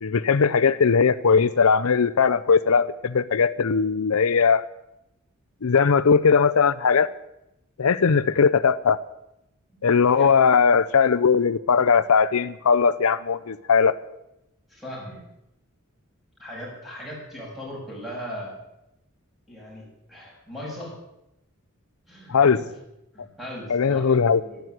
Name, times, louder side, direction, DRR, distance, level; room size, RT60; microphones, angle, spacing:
voice 1, 0.0-4.6 5.6-7.1 7.8-9.0 9.8-14.0 22.3-22.6 23.7-24.4, left 5 dB, 80° left, 13 dB, 0.6 m, -19 dB
voice 2, 9.8-10.3 14.7-15.2 16.4-18.5 19.5-20.9 22.1-22.4 23.1-24.6, equal, ahead, -4 dB, 7.5 m, -38 dB
12.5 x 12.0 x 9.5 m, 0.87 s
head